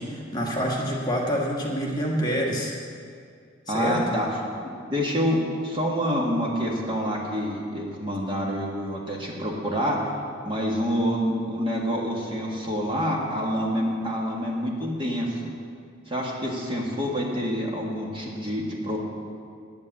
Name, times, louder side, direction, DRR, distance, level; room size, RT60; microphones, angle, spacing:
voice 1, 0.0-2.7 3.7-4.0, equal, 20° left, -3 dB, 1.5 m, -27 dB
voice 2, 3.7-4.4 4.9-10.0 10.4-15.5 16.1-19.0, equal, 25° right, -2 dB, 1.7 m, -27 dB
9.5 x 8.6 x 8.4 m, 2.3 s
head